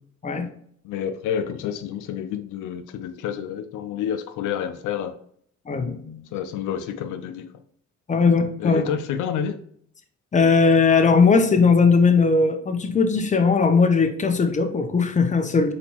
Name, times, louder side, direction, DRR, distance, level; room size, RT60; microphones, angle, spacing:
voice 1, 0.8-5.1 6.3-7.5 8.6-9.6, left 8 dB, 90° left, 8 dB, 0.6 m, -29 dB
voice 2, 5.7-6.2 8.1-8.8 10.3-15.7, left 4 dB, 25° left, 6 dB, 0.7 m, -19 dB
4.2 x 4.2 x 2.9 m, 0.63 s
cardioid pair, 90°, 30 cm